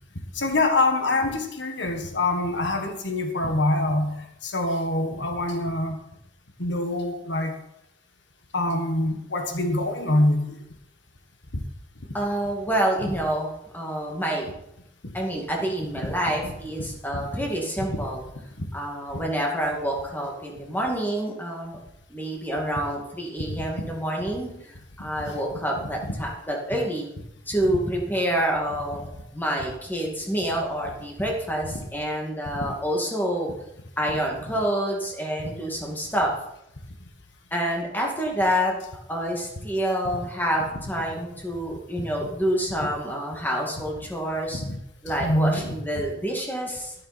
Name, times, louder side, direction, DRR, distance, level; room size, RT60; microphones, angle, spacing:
voice 1, 0.3-4.1 4.4-6.0 6.6-7.5 8.5-10.6 11.5-11.6 13.0-13.1 16.0-16.1 16.8-16.9 17.1-17.2 23.5-23.6 25.8-25.9 42.8-42.9 44.5-44.8 45.2-45.7, left 2 dB, 70° left, 4 dB, 1.7 m, -25 dB
voice 2, 12.1-14.5 15.1-18.2 18.7-21.8 22.1-24.5 25.0-27.1 27.5-29.0 29.3-33.5 34.0-36.3 37.5-44.6 45.0-46.9, equal, 10° left, 0 dB, 2.3 m, -27 dB
12.5 x 12.0 x 4.4 m, 0.81 s
head